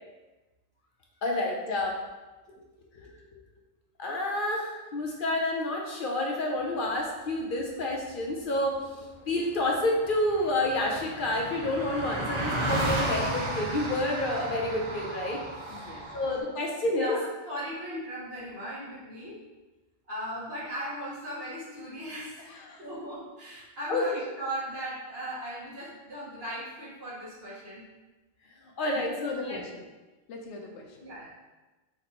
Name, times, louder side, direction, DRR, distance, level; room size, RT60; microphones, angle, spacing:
voice 1, 1.2-2.0 4.0-15.4 16.1-17.2 23.9-24.2 28.8-29.3, left 1 dB, 60° left, 0 dB, 0.6 m, -29 dB
voice 2, 2.6-3.4 15.7-16.4 22.4-22.9 28.9-29.9 30.3-31.1, left 4 dB, 85° left, 1 dB, 1.0 m, -41 dB
Car passing by, 9.3-9.4 9.5-16.4, right 1 dB, 40° right, 0.4 m, -33 dB
voice 3, 16.9-19.4 20.1-27.8 31.0-31.3, right 1 dB, 60° right, -9 dB, 1.9 m, -38 dB
4.5 x 2.8 x 4.1 m, 1.2 s
omnidirectional pair, 1.2 m